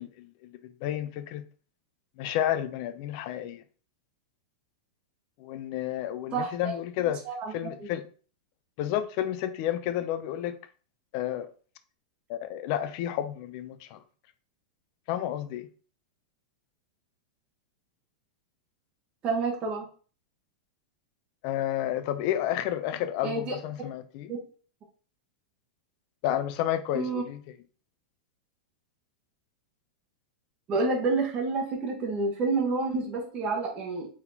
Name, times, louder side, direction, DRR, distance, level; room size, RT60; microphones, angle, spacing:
voice 1, 0.0-1.4 2.2-3.6 5.4-7.2 7.5-8.1 8.8-10.6 11.1-11.5 12.3-14.0 15.1-15.7 21.4-24.3 26.2-27.6, left 11 dB, 50° left, 0.5 m, -31 dB
voice 2, 6.3-6.7 7.3-7.5 7.8-7.9 19.2-19.8 23.2-23.5 24.3-24.4 26.9-27.2 30.7-34.1, right 3 dB, 25° right, 1.2 m, -29 dB
4.2 x 3.7 x 2.8 m
supercardioid pair, 140°, 4 cm